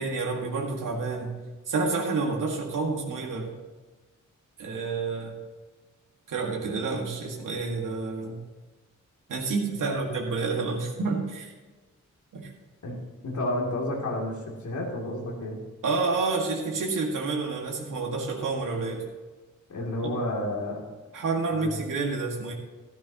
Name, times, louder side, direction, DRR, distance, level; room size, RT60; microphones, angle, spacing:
voice 1, 0.0-1.4 1.7-3.5 4.6-5.3 6.3-8.4 9.3-11.5 12.3-12.5 15.8-19.0 21.1-22.5, right 4 dB, 80° right, -1 dB, 2.1 m, -29 dB
voice 2, 13.2-15.6 19.7-20.8 21.5-21.8, left 1 dB, 65° left, -1 dB, 3.0 m, -31 dB
14.0 x 13.5 x 3.0 m, 1.3 s
wide cardioid pair, 155°, 31 cm